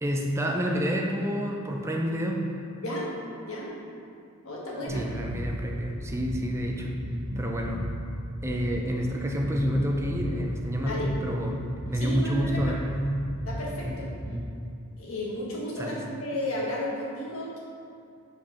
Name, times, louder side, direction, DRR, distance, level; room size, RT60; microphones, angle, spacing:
voice 1, 0.0-2.6 4.9-7.0 7.4-7.9 8.4-11.6 11.9-13.3 15.8-16.0, equal, 15° right, 1 dB, 0.5 m, -29 dB
voice 2, 4.4-5.1 10.8-11.1 11.9-12.7 13.5-14.1 15.0-17.6, left 1 dB, 80° left, -4 dB, 1.4 m, -33 dB
sound 1, 4.9-14.4, equal, 45° right, 1.1 m, -35 dB
5.1 x 4.3 x 5.8 m, 2.4 s
head